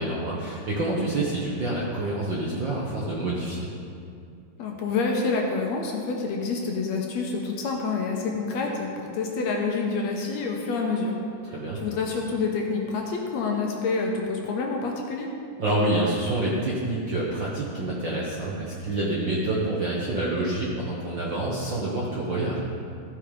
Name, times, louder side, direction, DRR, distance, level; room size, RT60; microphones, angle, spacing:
voice 1, 0.0-3.7 11.4-11.8 15.6-22.6, right 2 dB, 55° right, -5 dB, 1.3 m, -27 dB
voice 2, 4.6-11.2 11.8-15.3, left 4 dB, 70° left, 0 dB, 1.9 m, -27 dB
14.5 x 5.6 x 5.1 m, 2.5 s
omnidirectional pair, 3.6 m